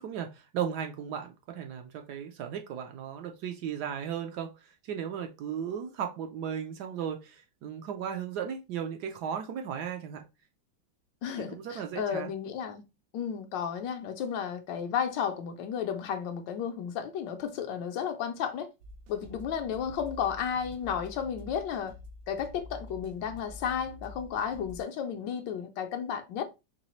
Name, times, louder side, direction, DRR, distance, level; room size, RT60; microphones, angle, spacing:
voice 1, 0.0-10.3 11.5-12.3, right 8 dB, 70° right, 1.1 m, -36 dB
voice 2, 11.2-12.8 13.1-18.7 19.1-21.9 22.3-26.4, left 8 dB, 75° left, 1.3 m, -33 dB
sound 1, 18.8-24.8, left 2 dB, 90° right, 1.3 m, -47 dB
4.0 x 3.1 x 3.0 m
omnidirectional pair, 2.0 m